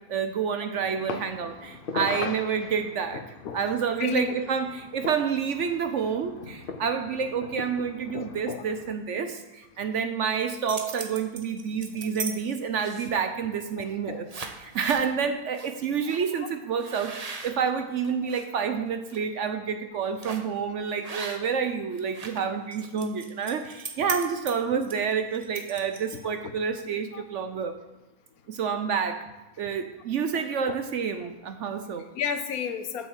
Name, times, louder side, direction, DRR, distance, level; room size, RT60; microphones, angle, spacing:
voice 1, 0.1-3.2 3.5-14.3 14.6-27.8 28.5-29.2 29.6-32.1, right 6 dB, 60° right, 8 dB, 0.8 m, -29 dB
sound 1, 0.8-9.0, left 5 dB, 50° left, 0.7 m, -40 dB
voice 2, 4.0-4.4 6.7-6.8 8.1-8.6 13.8-14.3 27.1-27.2 30.3-30.4 30.7-30.8 32.1-33.1, left 7 dB, 70° left, 9 dB, 1.2 m, -33 dB
sound 2, 10.4-12.3 12.8-13.2 13.8-14.0 14.3-15.1 15.5-15.7 16.0-16.2 16.8-18.4 18.9-19.2 20.2-20.5 21.0-21.6 21.9-26.4, right 4 dB, 35° right, 0.7 m, -38 dB
8.6 x 6.4 x 7.2 m, 1.0 s
omnidirectional pair, 1.6 m